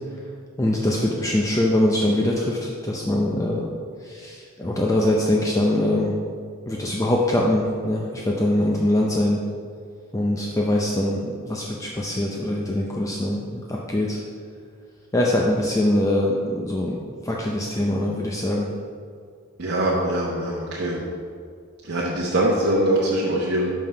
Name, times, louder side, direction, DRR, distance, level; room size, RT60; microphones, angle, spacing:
voice 1, 0.6-3.7 4.0-6.2 6.7-9.4 10.1-13.4 13.7-14.2 15.1-17.0 17.2-18.7, left 1 dB, 15° left, -2 dB, 0.5 m, -23 dB
voice 2, 19.6-21.0 21.8-23.7, right 1 dB, 55° right, -5 dB, 0.9 m, -23 dB
5.6 x 5.4 x 5.6 m, 2.2 s
head